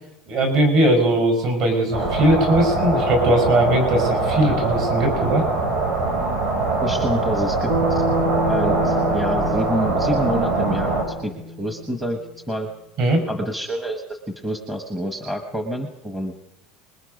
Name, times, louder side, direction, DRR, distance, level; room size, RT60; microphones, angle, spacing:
voice 1, 0.3-5.4 13.0-13.2, right 1 dB, 45° right, 5 dB, 4.9 m, -19 dB
sound 1, 1.9-11.0, right 3 dB, 70° right, 7.5 m, -22 dB
voice 2, 6.8-8.0 8.5-12.2 12.5-12.7 13.3-14.2 14.4-16.4, equal, 5° right, 3 dB, 1.1 m, -27 dB
Bass guitar, 7.7-12.1, right 1 dB, 85° right, 6.7 m, -28 dB
25.5 x 21.0 x 5.3 m, 0.91 s
cardioid pair, 180°, 0 cm